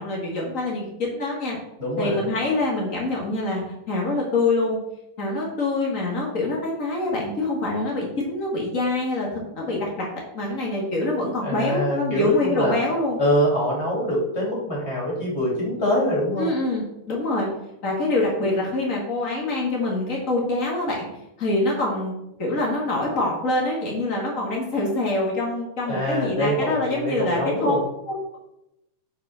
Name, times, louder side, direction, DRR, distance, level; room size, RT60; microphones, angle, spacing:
voice 1, 0.0-1.6 2.0-4.8 5.2-10.1 10.3-13.2 16.4-17.5 17.8-21.1 21.4-22.1 22.4-27.7 28.1-28.4, left 2 dB, 85° left, -3 dB, 0.7 m, -25 dB
voice 2, 1.8-2.2 11.4-12.7 13.2-16.5 25.9-27.8, equal, 20° left, -4 dB, 2.5 m, -24 dB
8.3 x 4.8 x 5.7 m, 0.86 s
omnidirectional pair, 4.7 m